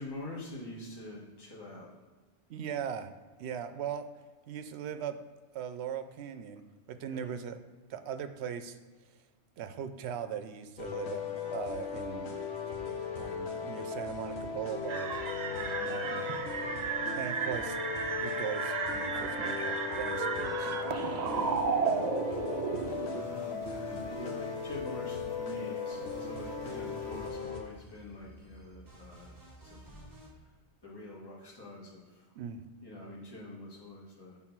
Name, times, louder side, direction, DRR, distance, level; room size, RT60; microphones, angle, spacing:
voice 1, 0.0-1.9 7.1-7.4 15.5-16.0 21.1-22.2 23.1-29.8 30.8-32.2 32.8-34.4, left 1 dB, 20° left, -6 dB, 1.5 m, -46 dB
voice 2, 2.5-3.1 3.4-4.0 4.5-5.2 5.5-7.6 7.9-8.8 9.6-11.2 11.5-12.3 13.2-15.1 15.8-16.4 17.1-17.8 18.2-20.8 32.3-32.6, right 8 dB, 75° right, 10 dB, 0.8 m, -39 dB
sound 1, 10.8-27.6, left 6 dB, 75° left, 1.1 m, -37 dB
sound 2, 14.9-23.2, right 5 dB, 50° right, 0.6 m, -33 dB
sound 3, 21.3-22.2 22.9-25.4 25.9-30.3, right 1 dB, 20° right, 1.1 m, -55 dB
6.1 x 3.7 x 5.9 m, 1.4 s
omnidirectional pair, 1.1 m